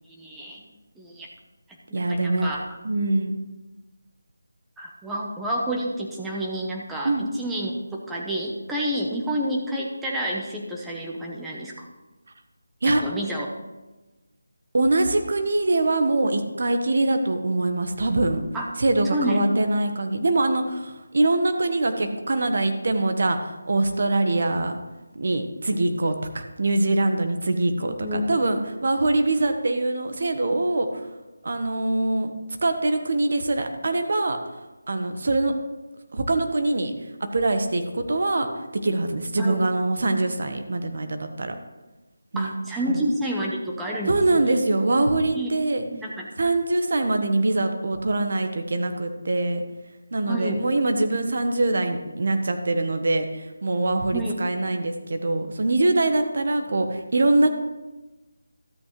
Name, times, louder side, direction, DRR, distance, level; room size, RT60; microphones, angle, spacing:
voice 1, 0.1-0.6 1.0-1.3 1.9-2.8 4.8-11.9 12.9-13.5 18.5-18.7 19.1-19.6 27.8-28.4 39.4-39.6 42.4-44.6 45.3-45.5 45.9-46.3 50.3-50.6 54.1-54.4, equal, 5° right, -3 dB, 0.9 m, -29 dB
voice 2, 1.9-2.5 2.8-3.3 7.0-7.3 12.8-13.0 14.7-18.4 18.8-24.8 25.1-30.9 31.4-32.3 32.6-34.4 34.9-35.5 36.1-36.9 37.2-41.6 42.3-42.6 44.1-45.8 46.4-49.6 50.1-57.5, right 2 dB, 55° right, 6 dB, 1.2 m, -23 dB
13.0 x 8.2 x 3.2 m, 1.1 s
figure-of-eight pair, 165°, 0 cm